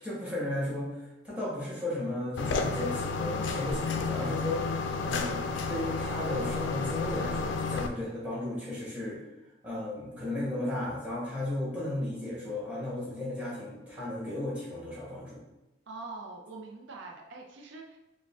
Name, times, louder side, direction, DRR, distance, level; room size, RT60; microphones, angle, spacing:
voice 1, 0.0-4.6 5.0-9.2 9.6-15.4, left 1 dB, 5° right, -7 dB, 1.1 m, -35 dB
sound 1, 2.4-7.9, left 4 dB, 75° left, 0.4 m, -31 dB
voice 2, 15.9-18.0, right 3 dB, 75° right, 1 dB, 0.5 m, -44 dB
4.8 x 2.2 x 3.5 m, 0.99 s
head